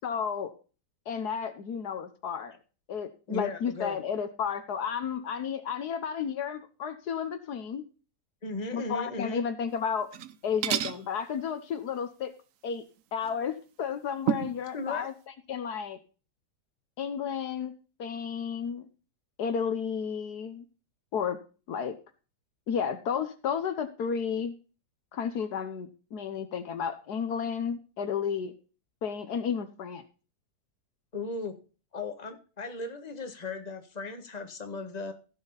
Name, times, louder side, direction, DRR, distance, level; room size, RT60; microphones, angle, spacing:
voice 1, 0.0-0.5 1.1-2.6 2.9-7.8 8.7-10.1 10.4-12.3 12.6-12.8 13.1-15.1 15.5-16.0 17.0-17.7 18.0-18.8 19.4-20.6 21.1-21.4 21.7-22.0 22.7-24.5 25.1-28.5 29.0-30.0, left 7 dB, 70° left, 10 dB, 1.5 m, -32 dB
voice 2, 3.3-4.0 8.4-9.4 14.7-15.1 31.1-31.6 31.9-35.1, left 3 dB, 25° left, 6 dB, 1.6 m, -36 dB
sound 1, 10.0-10.3 10.6-11.0 13.2-13.3 14.3-14.6, right 10 dB, 60° right, 1.0 m, -29 dB
16.0 x 6.2 x 4.0 m, 0.35 s
omnidirectional pair, 1.8 m